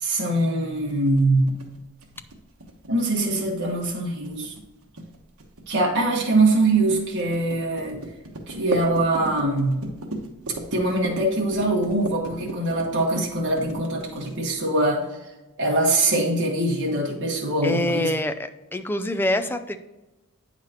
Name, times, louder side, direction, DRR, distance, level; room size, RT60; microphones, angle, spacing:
voice 1, 0.0-1.5 2.9-4.5 5.7-8.0 8.5-9.8 10.7-15.0 15.6-18.1, right 2 dB, 50° right, -3 dB, 1.4 m, -23 dB
sound 1, 0.9-14.6, right 2 dB, 70° right, 1.2 m, -36 dB
voice 2, 17.6-19.8, left 1 dB, 10° left, 8 dB, 0.4 m, -25 dB
8.8 x 5.7 x 3.0 m, 1.0 s
head